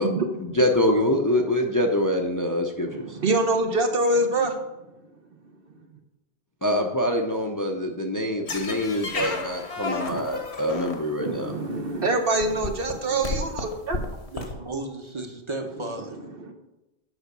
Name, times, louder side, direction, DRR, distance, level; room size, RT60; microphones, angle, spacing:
voice 1, 0.4-3.2 6.6-11.5, left 1 dB, 20° left, 2 dB, 0.7 m, -25 dB
voice 2, 2.9-4.6 10.1-10.2 11.2-14.0 16.3-16.5, right 2 dB, 60° right, 5 dB, 1.2 m, -25 dB
sound 1, 8.5-11.4 12.1-12.2 12.4-14.5, left 3 dB, 75° left, 1.5 m, -32 dB
voice 3, 14.3-16.2, right 2 dB, 30° right, 5 dB, 1.1 m, -34 dB
7.9 x 5.8 x 6.8 m, 0.98 s
omnidirectional pair, 1.1 m